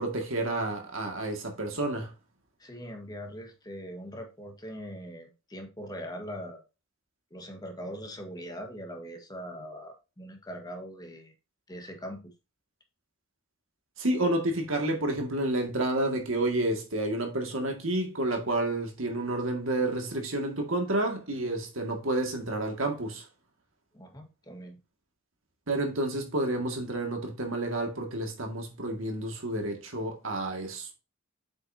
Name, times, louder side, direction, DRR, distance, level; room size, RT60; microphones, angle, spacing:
voice 1, 0.0-2.1 14.0-23.3 25.7-30.9, right 1 dB, 70° right, 2.1 m, -30 dB
voice 2, 2.6-6.6 7.3-11.3 11.7-12.2 23.9-24.8, equal, 20° left, 1.6 m, -41 dB
7.7 x 6.2 x 2.8 m
head